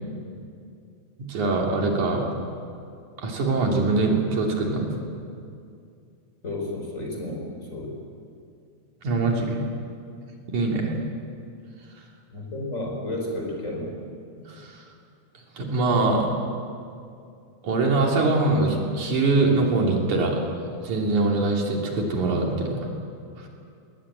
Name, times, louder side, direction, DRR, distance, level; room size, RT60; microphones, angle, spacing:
voice 1, 1.2-2.3 3.2-4.9 9.0-9.6 10.5-10.9 14.5-14.7 15.6-16.3 17.6-20.4 20.8-22.9, right 3 dB, 75° right, 0 dB, 4.2 m, -23 dB
voice 2, 6.4-8.0 12.3-14.0, left 1 dB, 25° left, 0 dB, 4.6 m, -32 dB
21.0 x 18.5 x 8.7 m, 2.4 s
omnidirectional pair, 3.4 m